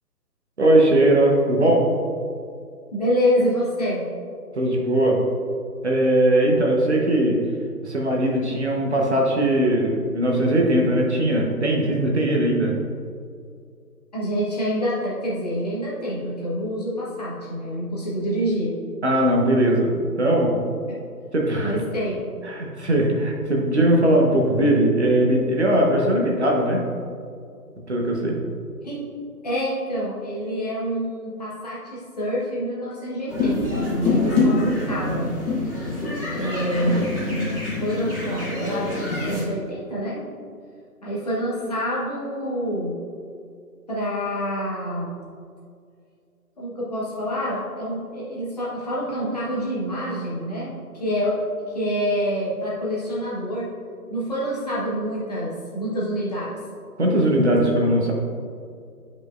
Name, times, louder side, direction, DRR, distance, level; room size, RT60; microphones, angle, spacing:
voice 1, 0.6-1.8 4.5-5.2 5.8-7.4 7.8-12.7 19.0-20.5 21.3-21.7 22.4-26.8 27.9-28.4 57.0-58.1, right 1 dB, 45° right, -1 dB, 1.1 m, -20 dB
voice 2, 2.9-4.0 14.1-18.7 20.9-21.0 21.6-22.2 28.8-29.0 29.4-35.3 36.3-37.0 37.8-40.2 41.0-43.0 43.9-45.1 46.6-51.4 51.7-53.7 54.1-56.6, equal, 25° left, -7 dB, 1.2 m, -27 dB
sound 1, 33.3-39.4, left 3 dB, 5° right, 1.0 m, -25 dB
10.5 x 5.3 x 2.5 m, 2.3 s
figure-of-eight pair, 150°, 47 cm